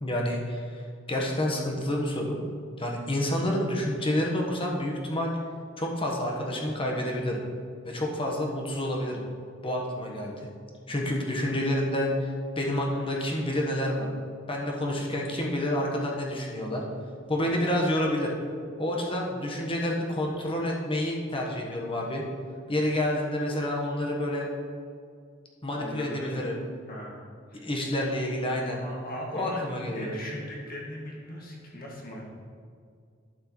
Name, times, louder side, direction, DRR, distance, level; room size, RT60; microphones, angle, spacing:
voice 1, 0.0-0.8 1.1-2.4 2.8-5.3 5.8-7.4 7.8-9.2 9.6-10.4 10.9-12.3 12.6-14.1 14.5-16.8 17.3-18.3 18.8-22.2 22.7-24.5 25.6-26.6 27.5-28.8 29.3-30.1, left 1 dB, 25° left, -1 dB, 1.2 m, -29 dB
voice 2, 25.7-26.5 26.9-27.2 27.5-27.6 28.7-32.2, equal, 50° left, -3 dB, 1.9 m, -39 dB
11.5 x 6.4 x 3.1 m, 2.2 s
head